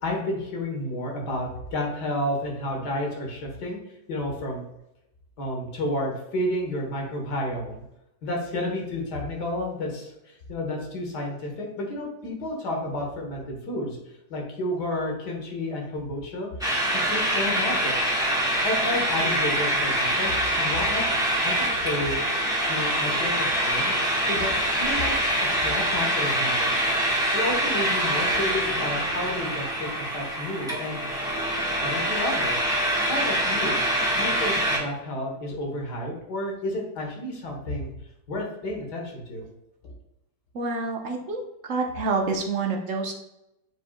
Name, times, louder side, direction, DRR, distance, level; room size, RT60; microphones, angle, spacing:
voice 1, 0.0-3.8 4.1-4.7 5.4-7.8 8.2-14.0 14.3-16.5 16.9-18.0 18.6-21.0 21.4-22.2 22.7-25.1 25.4-26.7 27.3-31.0 31.8-32.7 33.0-33.8 34.2-37.9 38.3-39.5, left 1 dB, 85° left, 0 dB, 2.0 m, -31 dB
sound 1, 16.6-34.8, right 1 dB, ahead, 1.4 m, -25 dB
voice 2, 40.5-41.4 41.7-43.1, right 3 dB, 50° right, 1 dB, 1.4 m, -27 dB
9.1 x 5.0 x 2.3 m, 0.87 s
omnidirectional pair, 1.8 m